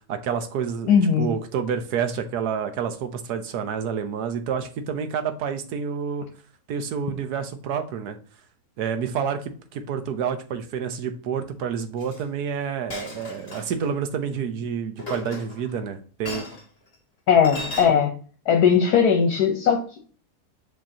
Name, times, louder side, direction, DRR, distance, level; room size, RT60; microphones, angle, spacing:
voice 1, 0.1-6.3 6.7-8.2 8.8-16.5, right 7 dB, 85° right, 8 dB, 1.4 m, -29 dB
voice 2, 0.9-1.3 17.3-18.1 18.5-20.0, left 7 dB, 75° left, 3 dB, 1.4 m, -19 dB
Chink clink, 12.0-12.2 12.9-13.9 15.0-15.8 16.2-16.6 17.4-17.9, left 2 dB, 40° left, 1.9 m, -35 dB
7.5 x 4.5 x 2.8 m, 0.42 s
omnidirectional pair, 1.7 m